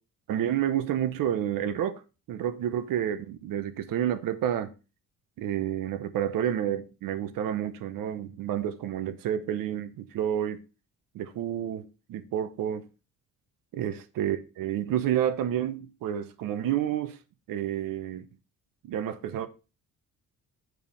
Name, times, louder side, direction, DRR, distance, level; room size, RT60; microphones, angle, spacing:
voice 1, 0.3-2.0 2.3-4.7 5.4-10.6 11.1-12.8 13.7-17.2 17.5-18.2 18.8-19.5, right 10 dB, 75° right, 1.0 m, -29 dB
9.2 x 4.8 x 5.4 m
cardioid pair, 165°, 34 cm